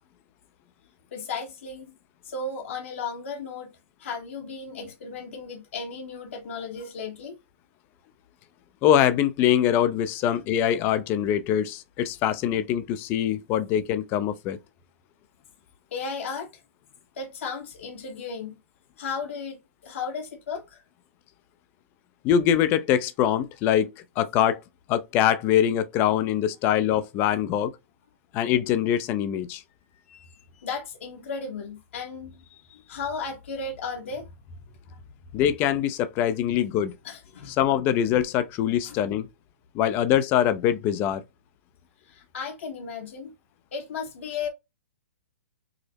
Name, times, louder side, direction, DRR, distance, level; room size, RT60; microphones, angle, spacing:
voice 1, 1.1-1.9 2.2-3.7 4.0-7.4 15.9-16.5 17.2-18.6 19.0-19.6 19.8-20.8 30.1-30.3 30.5-34.3 34.8-35.0 37.0-37.6 38.8-39.0 42.1-43.3 43.7-44.5, left 4 dB, 65° left, 1.2 m, -35 dB
voice 2, 8.8-14.6 22.2-24.6 24.9-27.7 28.3-29.6 35.3-36.9 37.5-39.3 39.7-41.2, left 10 dB, 30° left, 0.5 m, -23 dB
4.8 x 2.0 x 2.8 m
hypercardioid pair, 135°, 7 cm